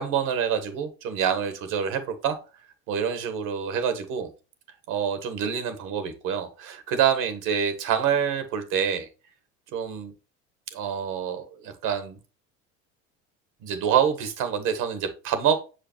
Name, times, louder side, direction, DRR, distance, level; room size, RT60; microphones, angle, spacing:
voice 1, 0.0-2.4 2.9-4.3 4.9-9.1 9.7-10.1 10.7-12.2 13.6-15.6, right 8 dB, 60° right, 9 dB, 1.4 m, -26 dB
6.5 x 5.0 x 3.0 m, 0.33 s
supercardioid pair, 90°, 35 cm